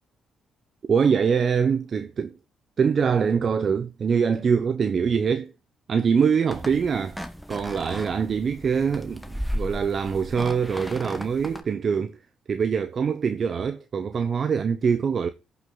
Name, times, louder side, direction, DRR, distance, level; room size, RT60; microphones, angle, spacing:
voice 1, 0.8-2.3 2.8-5.5 5.9-7.2 7.5-12.2 12.5-15.3, right 6 dB, 50° right, 0.8 m, -24 dB
sound 1, 6.5-11.6, equal, ahead, 1.5 m, -35 dB
14.0 x 6.0 x 3.9 m
cardioid pair, 90°, 0 cm